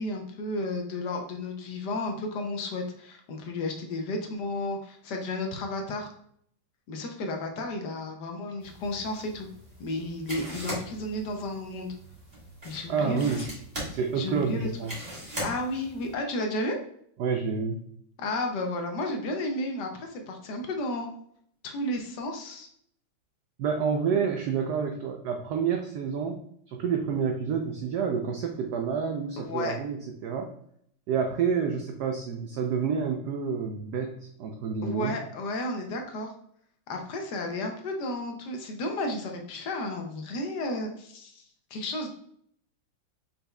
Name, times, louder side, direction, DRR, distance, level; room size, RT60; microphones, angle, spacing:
voice 1, 0.0-6.1 6.9-9.5 9.8-11.9 12.6-13.6 14.1-14.7 15.4-16.8 18.2-21.1 21.6-22.7 29.4-29.8 34.8-36.3 36.9-41.4 41.7-42.1, left 2 dB, 65° left, 3 dB, 1.1 m, -32 dB
sound 1, 8.6-16.1, equal, 20° right, 1.7 m, -41 dB
voice 2, 12.9-13.4 13.9-14.9 17.2-17.8 23.6-30.0 30.2-30.5 31.1-35.2, right 6 dB, 85° right, 3 dB, 0.8 m, -29 dB
5.4 x 4.2 x 2.2 m, 0.67 s
omnidirectional pair, 2.3 m